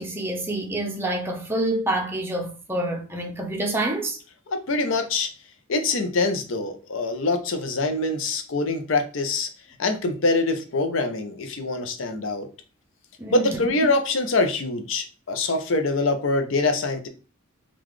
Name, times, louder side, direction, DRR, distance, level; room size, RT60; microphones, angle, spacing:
voice 1, 0.0-4.2 13.2-13.5, right 1 dB, 10° right, 0.6 m, -27 dB
voice 2, 4.5-5.3 5.7-9.5 9.8-12.5 13.3-17.1, left 2 dB, 65° left, 0.6 m, -24 dB
3.8 x 2.4 x 3.1 m
head